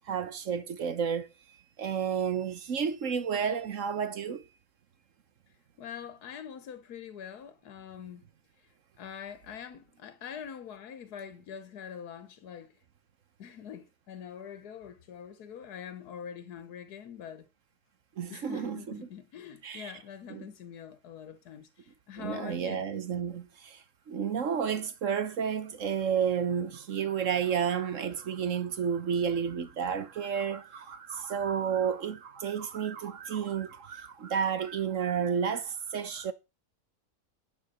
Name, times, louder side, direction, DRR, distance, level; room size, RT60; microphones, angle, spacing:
voice 1, 0.1-1.3 1.8-4.4 18.2-19.1 19.6-19.9 20.3-20.5 22.2-23.8 24.1-36.3, right 7 dB, 60° right, 1.3 m, -31 dB
voice 2, 5.8-8.3 9.0-12.7 13.4-17.5 18.3-22.8, left 8 dB, 80° left, 1.6 m, -44 dB
12.0 x 8.4 x 4.3 m
omnidirectional pair, 1.6 m